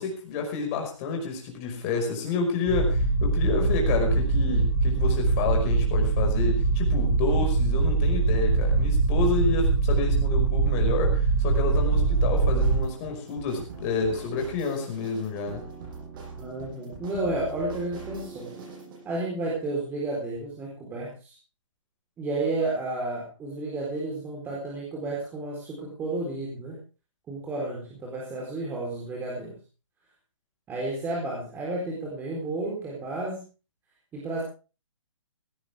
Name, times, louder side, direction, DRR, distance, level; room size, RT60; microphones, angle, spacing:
voice 1, 0.0-15.6, left 4 dB, 30° left, 3 dB, 5.3 m, -29 dB
sound 1, 2.7-12.8, right 3 dB, 5° left, 6.4 m, -23 dB
sound 2, 11.9-19.0, right 4 dB, 40° right, 7.6 m, -42 dB
voice 2, 16.4-18.5 19.0-21.3 22.2-26.8 27.3-29.6 30.7-33.4 34.1-34.4, right 2 dB, 10° right, -3 dB, 4.1 m, -32 dB
17.5 x 15.5 x 3.5 m, 0.33 s
hypercardioid pair, 155°, 17 cm